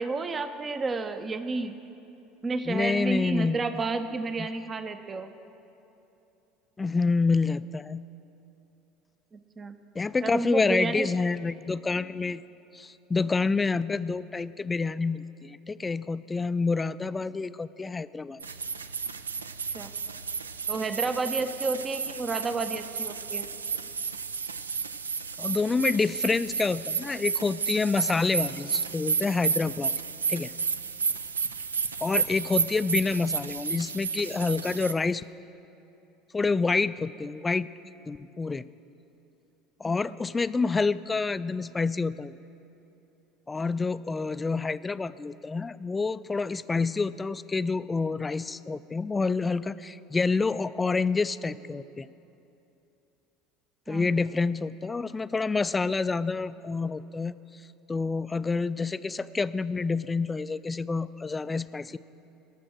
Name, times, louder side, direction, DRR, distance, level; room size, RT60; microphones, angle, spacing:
voice 1, 0.0-1.7 2.4-5.3 9.3-9.8 10.2-11.1 19.7-19.9 20.7-23.5 39.8-40.1 53.9-54.1, right 3 dB, 25° right, 9 dB, 0.6 m, -31 dB
voice 2, 2.7-3.8 4.4-4.5 6.8-8.0 10.0-12.4 12.7-18.4 25.4-29.9 30.3-30.5 32.0-35.2 36.3-37.7 38.1-38.6 39.8-42.4 43.5-52.1 53.9-57.3 57.9-62.0, left 4 dB, 20° left, 16 dB, 0.3 m, -28 dB
sound 1, 18.4-34.9, right 5 dB, 85° right, 0.4 m, -32 dB
18.0 x 6.9 x 6.3 m, 2.9 s
figure-of-eight pair, 70°, 0 cm